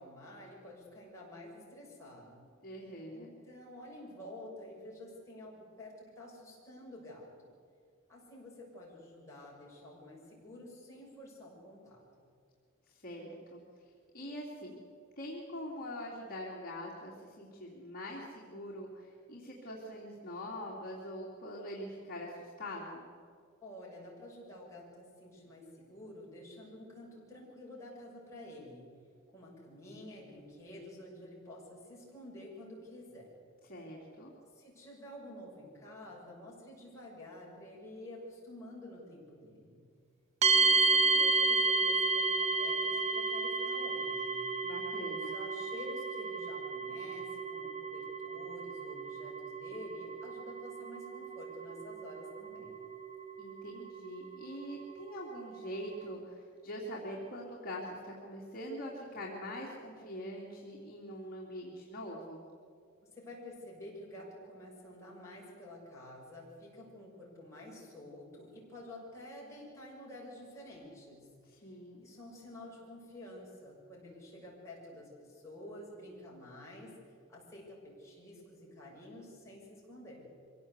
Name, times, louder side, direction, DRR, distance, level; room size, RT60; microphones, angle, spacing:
voice 1, 0.0-2.5 3.1-7.3 8.1-12.0 23.6-28.9 29.3-33.3 34.5-39.8 40.5-44.5 45.1-52.8 63.0-80.3, left 1 dB, 15° left, -5 dB, 6.5 m, -50 dB
voice 2, 2.6-3.3 12.9-13.6 14.1-14.8 15.2-23.1 33.7-34.3 44.6-45.4 53.4-62.4 71.5-72.1, equal, 45° left, -3 dB, 3.0 m, -43 dB
sound 1, 40.4-56.1, right 3 dB, 35° right, 0.8 m, -32 dB
24.5 x 17.0 x 8.2 m, 2.2 s
head